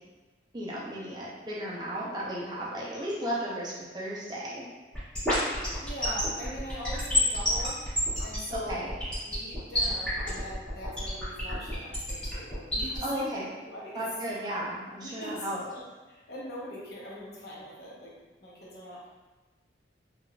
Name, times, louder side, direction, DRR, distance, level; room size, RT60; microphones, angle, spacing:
voice 1, 0.5-4.7 8.5-8.9 13.0-13.4 13.9-15.6, equal, 25° right, -6 dB, 0.5 m, -34 dB
sound 1, 4.9-13.0, left 1 dB, 5° left, 1.2 m, -29 dB
voice 2, 5.8-7.8 8.2-8.9 9.2-14.0 15.0-15.8 16.1-18.1 18.4-19.1, equal, 60° left, -6 dB, 0.8 m, -42 dB
3.5 x 2.4 x 2.2 m, 1.2 s
head